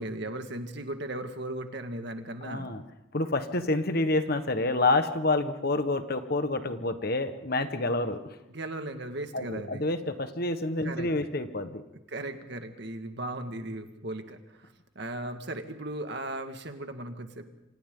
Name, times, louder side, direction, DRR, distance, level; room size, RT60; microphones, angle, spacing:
voice 1, 0.0-2.7 8.5-9.8 10.8-11.1 12.1-17.5, right 1 dB, 55° right, 6 dB, 2.0 m, -37 dB
voice 2, 2.4-2.8 3.1-8.4 9.3-11.8, left 2 dB, 50° left, 9 dB, 1.5 m, -28 dB
29.0 x 25.5 x 3.9 m, 0.92 s
head